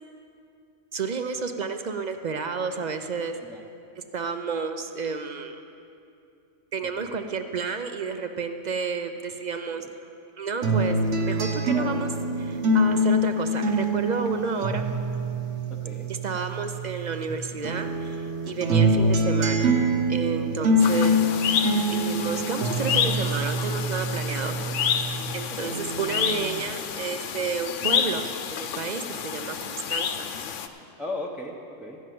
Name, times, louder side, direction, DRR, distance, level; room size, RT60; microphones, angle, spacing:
voice 1, 0.9-3.4 4.1-5.6 6.7-9.9 10.4-12.1 12.4-14.8 16.2-19.7 20.1-21.2 21.9-24.5 25.3-25.7 26.0-30.1, right 5 dB, 55° right, 7 dB, 0.5 m, -31 dB
voice 2, 6.8-7.2 9.7-9.9 11.7-12.0 15.7-16.1 19.0-19.1 20.6-20.8 24.6-24.8 25.6-25.8 31.0-32.0, left 2 dB, ahead, -2 dB, 0.6 m, -37 dB
sound 1, 10.6-17.3 17.6-25.3 25.7-26.6, right 1 dB, 70° right, 1.3 m, -25 dB
sound 2, 20.8-30.7, left 7 dB, 80° left, 1.0 m, -29 dB
14.0 x 5.5 x 9.2 m, 2.6 s
omnidirectional pair, 1.3 m